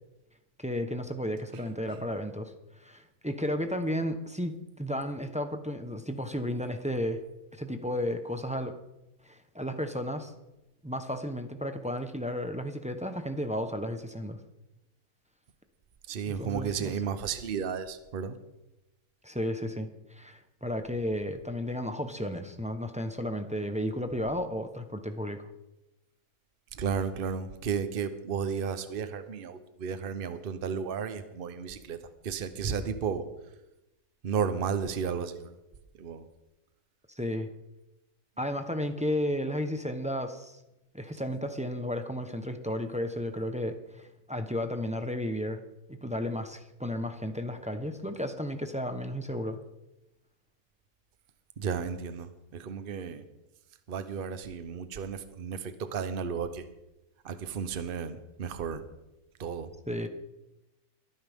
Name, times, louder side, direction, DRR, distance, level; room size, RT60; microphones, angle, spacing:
voice 1, 0.6-7.2 7.5-8.7 9.3-10.3 10.8-14.4 16.3-16.9 19.2-25.5 37.1-37.5 38.4-40.6 40.9-45.6 45.9-49.6 59.9-60.1, equal, 5° right, 7 dB, 0.8 m, -33 dB
voice 2, 1.5-2.1 16.1-18.4 26.7-33.2 34.2-35.5 36.0-36.3 51.6-53.2 53.9-56.7 57.2-58.8 59.4-59.7, right 6 dB, 45° right, 10 dB, 1.0 m, -33 dB
22.5 x 9.7 x 3.6 m, 0.93 s
omnidirectional pair, 1.6 m